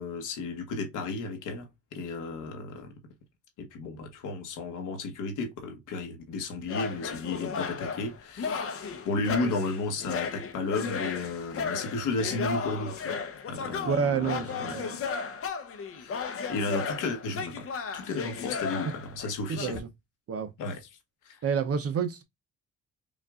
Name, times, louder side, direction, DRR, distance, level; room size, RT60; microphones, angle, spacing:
voice 1, 0.0-2.9 3.6-13.2 13.5-14.8 15.9-17.7 17.9-19.8 20.6-20.9 21.2-21.4, left 3 dB, 85° left, 1.3 m, -33 dB
sound 1, 6.7-19.8, left 5 dB, 45° left, 0.8 m, -35 dB
voice 2, 13.8-15.0 19.5-19.9 20.3-20.5 21.4-22.2, right 6 dB, 50° right, 0.7 m, -29 dB
5.1 x 2.5 x 2.4 m
cardioid pair, 90°, 30 cm